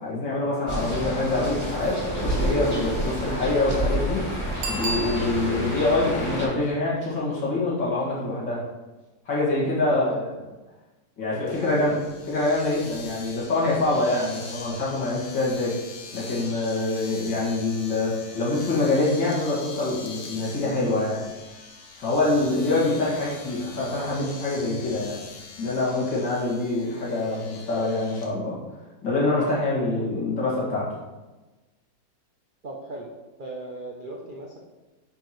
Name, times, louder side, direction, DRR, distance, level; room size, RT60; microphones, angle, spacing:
voice 1, 0.0-4.2 4.7-8.6 9.3-10.3 11.2-11.9 12.3-15.7 16.1-21.2 22.0-25.2 25.6-28.6 29.0-30.9, left 2 dB, 75° left, -7 dB, 2.8 m, -25 dB
sound 1, 0.7-6.5, equal, 10° left, 2.1 m, -28 dB
Bicycle bell, 4.6-5.8 11.2-11.3, right 2 dB, 85° right, 1.6 m, -32 dB
voice 2, 9.8-10.1 11.3-11.8 32.6-33.1 33.4-34.6, right 1 dB, 70° right, -2 dB, 0.4 m, -36 dB
Domestic sounds home sounds, 11.5-28.3, left 4 dB, 50° left, 1.0 m, -43 dB
9.5 x 4.6 x 3.1 m, 1.2 s
omnidirectional pair, 2.0 m